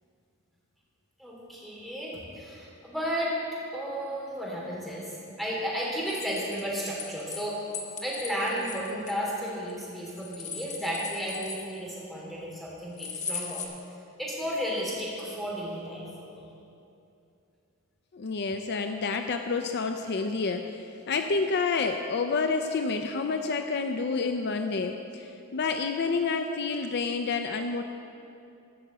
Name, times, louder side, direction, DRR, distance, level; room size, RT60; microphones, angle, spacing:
voice 1, 1.2-3.4 3.7-7.6 8.0-13.6 14.2-16.4, equal, ahead, -6 dB, 3.1 m, -33 dB
sound 1, 6.1-7.4 7.7-9.7 10.1-12.0 13.0-13.7, left 5 dB, 35° left, 1.2 m, -38 dB
voice 2, 18.1-27.8, left 4 dB, 50° left, 6 dB, 0.5 m, -29 dB
13.5 x 6.1 x 7.9 m, 2.7 s
head